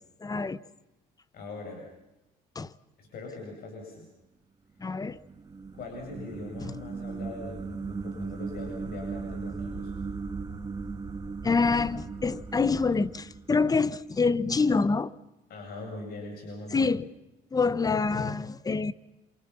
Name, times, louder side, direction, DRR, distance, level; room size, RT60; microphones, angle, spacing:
voice 1, 0.2-0.6 2.5-2.7 4.8-5.2 11.4-15.1 16.7-17.1 17.5-18.9, left 4 dB, 20° left, 1.1 m, -26 dB
voice 2, 1.3-1.9 3.0-4.1 5.7-9.9 15.5-17.0, left 2 dB, 65° left, 7.9 m, -41 dB
sound 1, 4.8-14.1, right 4 dB, 25° right, 1.9 m, -38 dB
28.5 x 28.0 x 5.8 m
cardioid pair, 110°, 17 cm